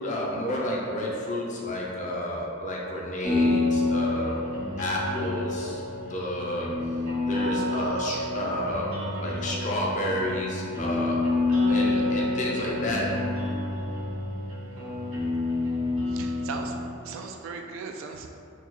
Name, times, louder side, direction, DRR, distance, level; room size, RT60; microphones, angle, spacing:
voice 1, 0.0-4.4 4.8-5.8 6.1-7.0 7.3-11.3 11.7-13.3, left 1 dB, 35° left, -3 dB, 0.5 m, -30 dB
sound 1, 3.2-16.9, left 2 dB, 80° right, 1.0 m, -28 dB
voice 2, 16.0-16.8 17.0-18.3, right 4 dB, 65° right, 3 dB, 0.3 m, -37 dB
3.0 x 2.2 x 3.6 m, 2.5 s
head